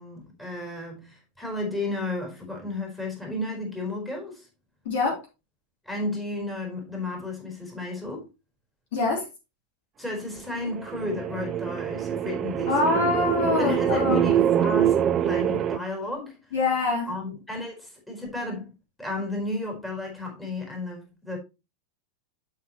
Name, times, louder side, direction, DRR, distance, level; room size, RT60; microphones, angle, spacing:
voice 1, 0.0-4.5 5.8-8.3 10.0-13.1 13.6-16.4 17.1-18.7 19.0-21.4, left 2 dB, 5° left, 4.2 m, -33 dB
voice 2, 4.9-5.2 8.9-9.2 12.7-14.2 16.5-17.1, left 3 dB, 55° left, 3.9 m, -24 dB
sound 1, 10.7-15.8, right 10 dB, 30° right, 0.5 m, -24 dB
12.0 x 5.6 x 3.1 m
figure-of-eight pair, 90°, 0 cm